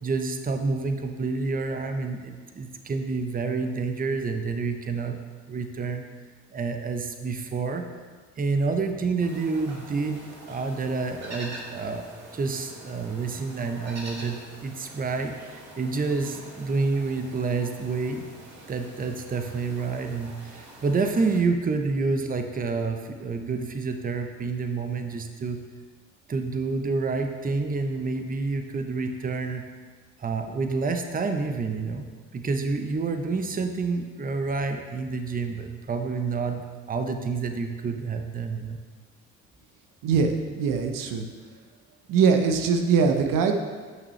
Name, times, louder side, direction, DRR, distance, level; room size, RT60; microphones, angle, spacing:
voice 1, 0.0-5.2 5.5-6.0 6.5-7.9 8.4-10.2 10.5-12.0 12.3-18.3 18.7-25.6 26.3-29.6 30.2-32.0 32.3-38.8, right 4 dB, 25° right, 6 dB, 0.8 m, -28 dB
sound 1, 9.2-21.4, right 1 dB, 50° right, 2.2 m, -45 dB
voice 2, 40.0-41.3 42.1-43.5, right 5 dB, 70° right, 5 dB, 0.8 m, -22 dB
9.0 x 6.1 x 3.2 m, 1.5 s
hypercardioid pair, 60°, 34 cm